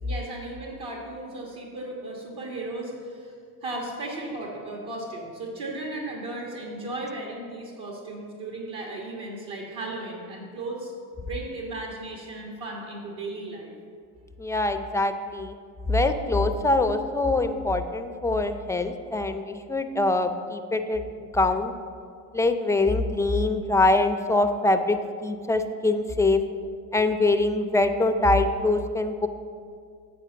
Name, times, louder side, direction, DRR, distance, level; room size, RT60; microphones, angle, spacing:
voice 1, 0.0-3.3 3.6-10.9 11.2-13.7, right 2 dB, 60° right, -1 dB, 1.5 m, -35 dB
voice 2, 14.4-15.5 15.9-21.0 21.3-21.7 22.3-26.4 26.9-29.3, left 2 dB, 5° left, 7 dB, 0.4 m, -24 dB
8.4 x 4.4 x 6.9 m, 2.2 s
supercardioid pair, 80°, 46 cm